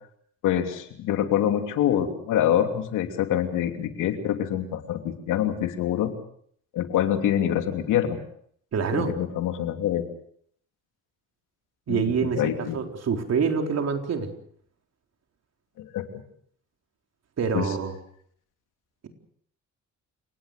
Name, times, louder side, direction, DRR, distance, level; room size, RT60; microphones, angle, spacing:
voice 1, 0.4-6.1 6.7-8.2 8.9-10.0 11.9-12.8 15.8-16.2 17.5-17.7, left 10 dB, 90° left, 6 dB, 3.0 m, -25 dB
voice 2, 8.7-9.1 11.9-14.3 17.4-17.9, right 6 dB, 55° right, 4 dB, 4.3 m, -26 dB
29.5 x 18.5 x 6.7 m, 0.64 s
cardioid pair, 90°, 30 cm